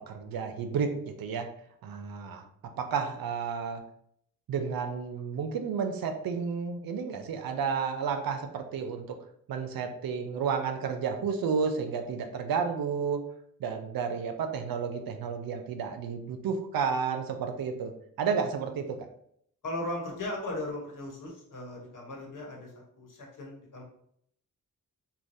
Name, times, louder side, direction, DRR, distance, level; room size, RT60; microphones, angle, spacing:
voice 1, 0.1-1.5 1.8-2.4 2.8-3.8 4.5-9.2 9.5-13.2 13.6-17.9 18.2-18.9, right 6 dB, 80° right, 6 dB, 0.5 m, -31 dB
voice 2, 19.6-23.8, left 1 dB, 65° left, -1 dB, 1.1 m, -37 dB
3.2 x 2.2 x 2.6 m, 0.68 s
cardioid pair, 50°, 35 cm